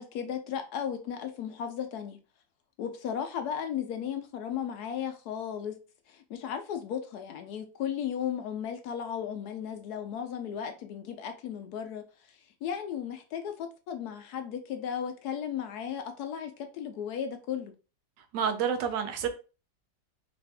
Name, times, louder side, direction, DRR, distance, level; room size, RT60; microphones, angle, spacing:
voice 1, 0.0-2.2 2.8-5.7 6.1-17.7, left 8 dB, 70° left, 1.0 m, -35 dB
voice 2, 18.2-19.3, right 7 dB, 85° right, 1.4 m, -29 dB
4.0 x 2.5 x 3.3 m
omnidirectional pair, 1.9 m